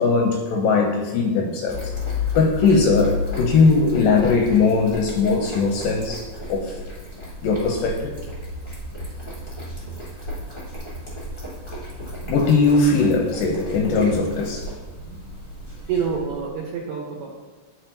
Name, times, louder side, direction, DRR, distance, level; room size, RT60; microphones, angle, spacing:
voice 1, 0.0-1.8 2.4-6.7 7.4-8.2 12.3-14.7, left 4 dB, 80° left, 2 dB, 2.0 m, -19 dB
sound 1, 1.7-16.5, left 2 dB, 55° left, 0.5 m, -33 dB
voice 2, 15.9-17.3, right 6 dB, 75° right, -2 dB, 1.8 m, -27 dB
10.5 x 3.9 x 2.7 m, 1.3 s
omnidirectional pair, 4.2 m